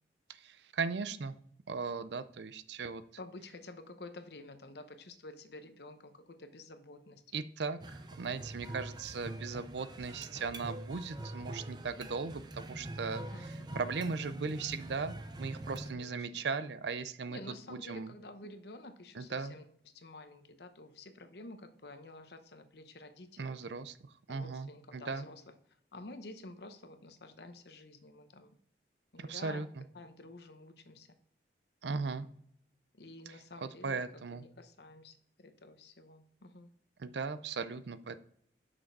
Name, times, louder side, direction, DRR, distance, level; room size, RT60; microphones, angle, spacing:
voice 1, 0.3-1.4 1.7-3.0 7.3-17.4 17.7-18.1 19.1-19.5 23.4-25.3 29.2-29.8 31.8-32.3 33.3-34.4 37.0-38.2, right 4 dB, 80° right, 13 dB, 0.5 m, -38 dB
voice 2, 3.2-7.2 9.1-9.2 13.1-13.8 15.9-16.4 17.3-19.6 19.9-23.6 24.3-25.5 25.9-28.5 29.1-29.6 29.9-31.2 32.2-32.3 32.9-36.7, left 2 dB, 70° left, 9 dB, 0.8 m, -50 dB
sound 1, 7.8-15.9, right 1 dB, 25° right, 0.5 m, -44 dB
6.4 x 6.2 x 4.6 m, 0.68 s
head